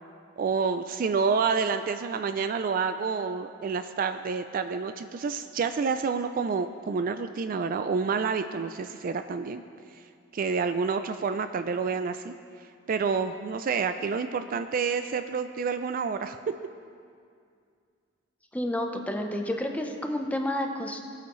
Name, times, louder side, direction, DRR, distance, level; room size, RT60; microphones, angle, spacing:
voice 1, 0.4-9.6 10.3-12.3 12.9-16.4, right 5 dB, 45° right, 9 dB, 0.3 m, -28 dB
voice 2, 18.5-21.0, left 1 dB, 5° left, 3 dB, 0.8 m, -30 dB
18.5 x 9.2 x 3.1 m, 2.3 s
head